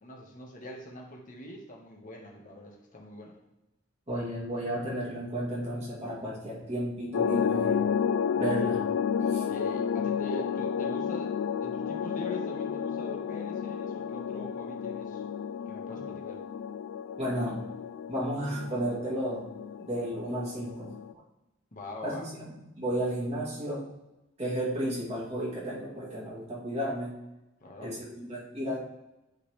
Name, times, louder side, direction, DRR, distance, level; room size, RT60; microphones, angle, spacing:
voice 1, 0.0-3.4 9.4-11.3 11.6-15.2 15.7-16.4 21.7-22.2 27.6-27.9, equal, 45° left, 0 dB, 1.4 m, -43 dB
voice 2, 4.1-7.9 8.3-8.8 9.3-9.4 15.9-16.0 17.2-17.6 18.1-19.5 19.8-21.2 22.0-23.8 24.4-27.1 27.8-28.8, right 1 dB, 35° right, -7 dB, 2.6 m, -33 dB
sound 1, 7.1-21.1, left 7 dB, 85° left, 0.3 m, -31 dB
10.0 x 4.0 x 3.3 m, 0.97 s
head